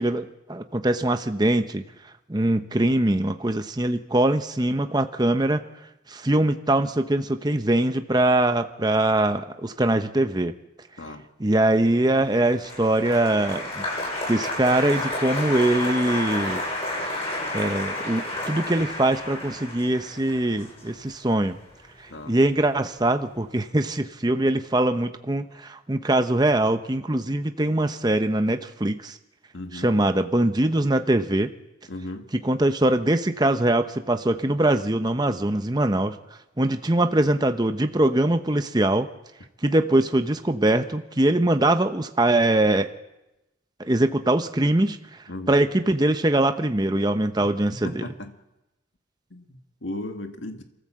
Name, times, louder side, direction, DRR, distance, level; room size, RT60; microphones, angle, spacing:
voice 1, 0.0-1.8 2.3-5.7 6.1-10.5 11.4-13.9 14.3-16.6 17.5-21.6 22.3-29.2 29.8-31.5 32.4-36.2 36.6-39.1 39.6-42.9 43.8-45.0 45.5-48.0, right 1 dB, 20° right, 8 dB, 0.8 m, -22 dB
Applause, 12.1-22.5 22.7-23.3, left 1 dB, 30° left, 8.0 m, -31 dB
voice 2, 29.5-30.0 31.9-32.3 45.3-45.5 47.8-48.4 49.3-50.6, left 1 dB, 75° left, 5 dB, 1.9 m, -36 dB
28.0 x 14.5 x 7.6 m, 0.96 s
head